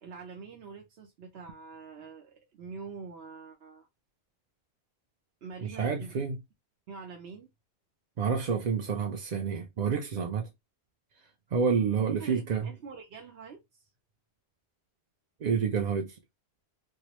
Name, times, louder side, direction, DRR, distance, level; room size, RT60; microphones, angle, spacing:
voice 1, 0.0-3.9 5.4-6.3 6.9-7.5 11.9-13.9, right 5 dB, 75° right, 1.0 m, -45 dB
voice 2, 5.6-6.4 8.2-10.5 11.5-12.7 15.4-16.2, right 6 dB, 50° right, 0.6 m, -29 dB
4.6 x 2.0 x 2.9 m
omnidirectional pair, 1.1 m